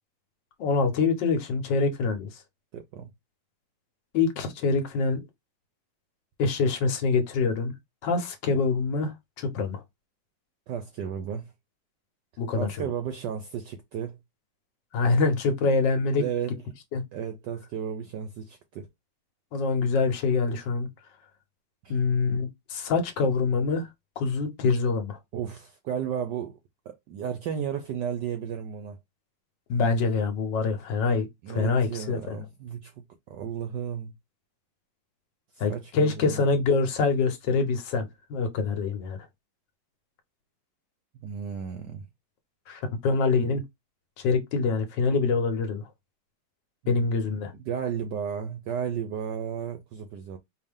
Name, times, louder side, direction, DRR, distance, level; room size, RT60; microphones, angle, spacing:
voice 1, 0.6-2.3 4.1-5.2 6.4-7.7 8.0-9.8 12.4-12.9 14.9-16.2 16.9-17.0 19.5-20.9 21.9-23.9 24.2-25.2 29.7-32.4 35.6-39.2 42.7-43.6 44.2-45.9 46.9-47.5, left 4 dB, 60° left, 1.5 m, -25 dB
voice 2, 2.7-3.1 10.7-11.5 12.6-14.2 16.2-16.6 17.1-18.9 21.8-22.0 25.3-26.6 26.9-29.0 31.4-32.9 33.3-34.1 35.5-36.4 41.2-42.1 46.8-47.1 47.7-50.4, right 8 dB, 70° right, 1.1 m, -33 dB
4.7 x 2.7 x 3.5 m
omnidirectional pair, 2.3 m